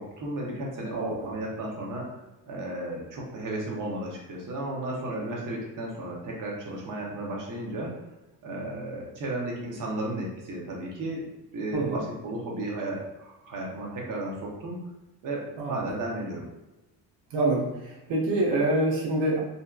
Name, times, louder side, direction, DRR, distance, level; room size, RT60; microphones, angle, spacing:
voice 1, 0.0-2.2 2.4-8.0 8.4-11.2 11.5-14.8 15.2-16.5, right 1 dB, 45° right, -3 dB, 0.8 m, -34 dB
voice 2, 1.0-1.3 11.7-12.0 15.6-15.8 17.3-19.4, right 2 dB, 80° right, -3 dB, 0.7 m, -26 dB
2.6 x 2.2 x 2.3 m, 0.99 s
cardioid pair, 125°, 43 cm